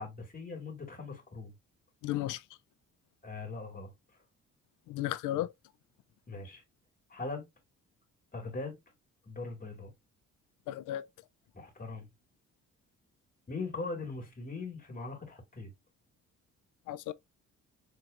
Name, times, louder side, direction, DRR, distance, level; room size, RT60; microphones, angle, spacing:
voice 1, 0.0-1.5 3.2-3.9 6.3-6.6 7.1-7.5 8.3-8.8 9.3-9.9 11.5-12.1 13.5-15.7, left 3 dB, 30° left, 2.0 m, -40 dB
voice 2, 2.0-2.4 4.9-5.5 10.7-11.1 16.9-17.1, left 14 dB, 85° left, 0.5 m, -34 dB
4.3 x 3.2 x 2.4 m
cardioid pair, 90°, 30 cm